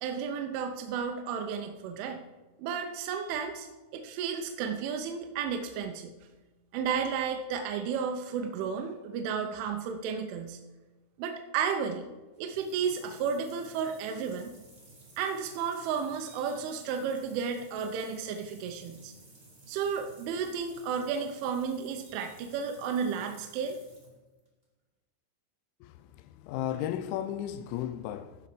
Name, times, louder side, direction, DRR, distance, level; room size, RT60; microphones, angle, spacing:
voice 1, 0.0-2.2 2.6-6.1 6.7-10.6 11.2-12.1 12.4-14.5 15.2-19.1 19.7-23.8, right 6 dB, 80° right, 3.2 m, -33 dB
sound 1, 12.2-24.6, right 2 dB, 65° right, 0.5 m, -55 dB
voice 2, 26.2-28.4, left 11 dB, 85° left, 2.7 m, -34 dB
14.5 x 5.7 x 4.9 m
omnidirectional pair, 5.6 m